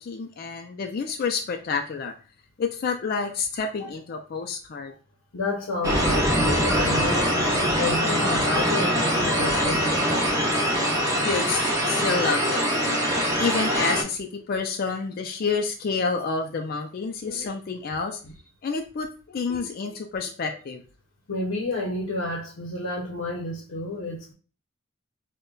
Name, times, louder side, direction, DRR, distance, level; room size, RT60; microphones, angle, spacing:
voice 1, 0.0-2.1 2.6-4.9 10.7-13.0 13.4-18.2 18.6-20.8, left 5 dB, 45° left, 0.4 m, -29 dB
voice 2, 5.3-10.3 18.2-18.3 21.3-24.3, left 2 dB, 80° left, 0.7 m, -30 dB
sound 1, 5.8-14.0, equal, 15° right, 0.6 m, -23 dB
5.0 x 2.2 x 2.2 m
head